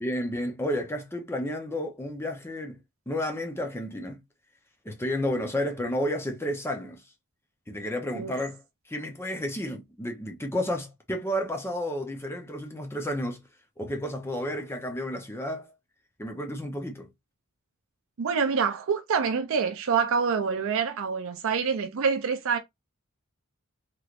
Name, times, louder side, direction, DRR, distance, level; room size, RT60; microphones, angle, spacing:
voice 1, 0.0-2.8 3.1-4.2 4.8-7.0 7.7-8.6 8.9-13.4 13.8-15.7 16.2-17.1, left 1 dB, 10° left, 0.6 m, -31 dB
voice 2, 18.2-22.6, right 6 dB, 60° right, 0.5 m, -26 dB
3.1 x 3.0 x 2.4 m
head